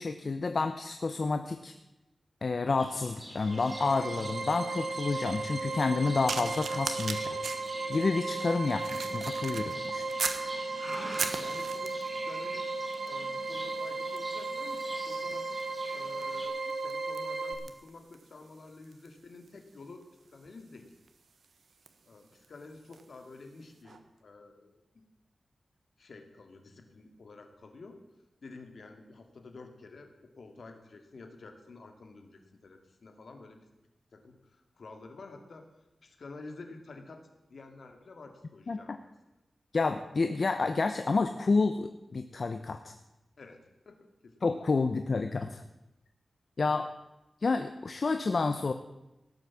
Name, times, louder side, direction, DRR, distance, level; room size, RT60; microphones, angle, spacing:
voice 1, 0.0-1.7 2.4-7.4 7.9-10.0 38.7-39.0 39.7-42.9 44.4-45.6 46.6-46.9 47.4-48.7, left 3 dB, 55° left, 8 dB, 0.8 m, -29 dB
Livestock farm animals working animals, 2.8-16.5, equal, 10° right, 5.4 m, -47 dB
sound 1, 3.4-17.5, right 3 dB, 50° right, 2.0 m, -35 dB
sound 2, 6.3-10.5 10.9-12.2 12.9-13.2 13.5-23.1 23.8-24.0, right 5 dB, 90° right, 1.2 m, -41 dB
voice 2, 11.0-12.8 13.1-20.9 22.1-24.8 26.0-28.0 28.4-33.7 34.1-35.7 36.0-39.1 43.4-44.0 44.2-44.5, left 3 dB, 70° left, 5 dB, 2.3 m, -50 dB
17.5 x 8.0 x 7.3 m, 0.99 s
wide cardioid pair, 105°, 0 cm